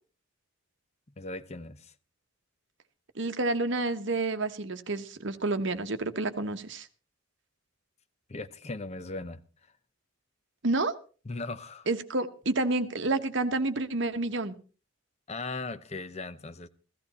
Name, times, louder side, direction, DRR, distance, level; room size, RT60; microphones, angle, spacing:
voice 1, 1.2-1.9 8.3-9.4 11.2-11.9 15.3-16.7, left 3 dB, 30° left, 0.7 m, -38 dB
voice 2, 3.2-6.9 10.6-10.9 11.9-14.6, right 2 dB, 60° right, 1.1 m, -29 dB
15.5 x 14.0 x 4.2 m
head